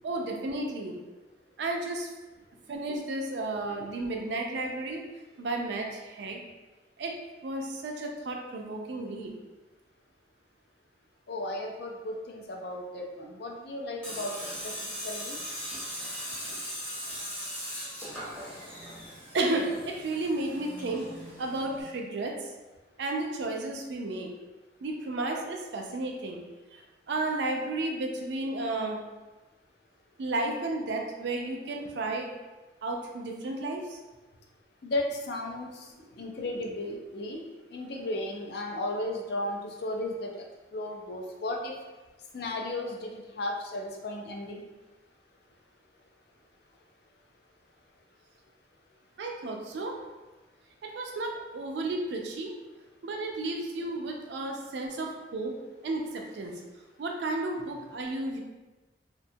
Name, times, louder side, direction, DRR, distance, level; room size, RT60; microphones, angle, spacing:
voice 1, 0.0-0.9 1.6-2.1 2.7-5.0 5.4-6.4 7.0-7.1 7.4-9.3 19.3-21.1 21.4-22.4 23.0-24.3 24.8-26.4 26.7-26.8 27.1-29.0 30.2-32.3 32.8-34.0 43.0-43.1 49.2-49.9 50.8-52.5 53.0-55.5 55.8-56.5 57.0-58.4, right 2 dB, 60° right, 1 dB, 0.4 m, -32 dB
voice 2, 11.3-14.3 14.6-14.8 15.0-15.4 34.8-37.4 37.7-40.5 40.7-41.7 42.3-44.6, left 1 dB, 55° left, 1 dB, 0.4 m, -35 dB
Tools, 14.0-21.8, equal, 5° left, 0.7 m, -39 dB
2.6 x 2.2 x 2.7 m, 1.2 s
head